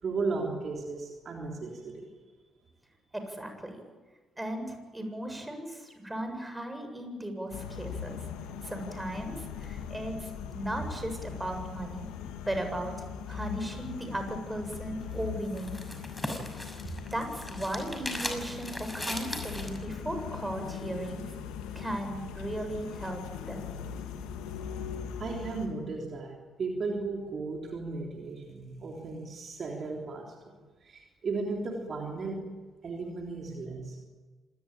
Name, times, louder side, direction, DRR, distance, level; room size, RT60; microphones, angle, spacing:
voice 1, 0.0-2.1 16.9-17.0 25.2-32.5 32.8-34.0, right 3 dB, 50° right, 1 dB, 3.5 m, -35 dB
voice 2, 3.1-3.8 4.4-8.3 8.6-12.1 12.5-15.8 17.1-21.3 21.7-23.6, right 1 dB, 10° right, 5 dB, 7.4 m, -36 dB
sound 1, 7.5-25.7, left 8 dB, 70° left, 2.0 m, -40 dB
sound 2, 15.0-19.8, left 1 dB, 10° left, 6.3 m, -38 dB
26.0 x 19.0 x 9.0 m, 1.3 s
hypercardioid pair, 45°, 0 cm